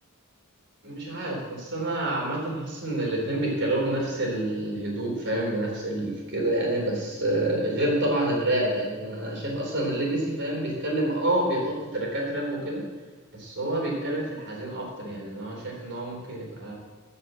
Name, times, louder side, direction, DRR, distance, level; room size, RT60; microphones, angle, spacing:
voice 1, 0.8-12.8 13.4-16.7, right 1 dB, 55° right, -1 dB, 3.8 m, -28 dB
14.0 x 5.5 x 7.6 m, 1.4 s
head